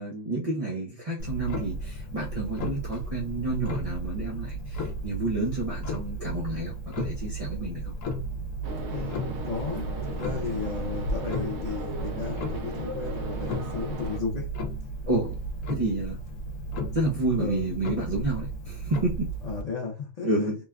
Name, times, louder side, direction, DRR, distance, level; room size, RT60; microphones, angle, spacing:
voice 1, 0.0-7.9 15.0-15.3 15.7-16.2 16.9-19.3 20.2-20.6, right 2 dB, 45° right, 0.5 m, -30 dB
Clock, 1.2-19.6, right 1 dB, 80° left, 1.0 m, -34 dB
sound 1, 8.6-14.2, right 1 dB, 65° right, 0.8 m, -36 dB
voice 2, 8.9-14.5 17.4-17.7 19.4-20.5, left 5 dB, 60° left, 0.4 m, -34 dB
3.1 x 2.3 x 2.2 m
omnidirectional pair, 1.4 m